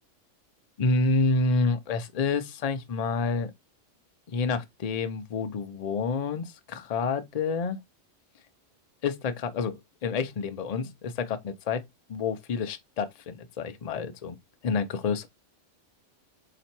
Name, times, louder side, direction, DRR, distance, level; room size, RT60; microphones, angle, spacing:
voice 1, 0.8-3.5 4.3-7.8 9.0-11.8 12.1-14.4 14.6-15.3, left 4 dB, 40° left, 0.6 m, -28 dB
4.2 x 2.9 x 4.3 m
omnidirectional pair, 1.3 m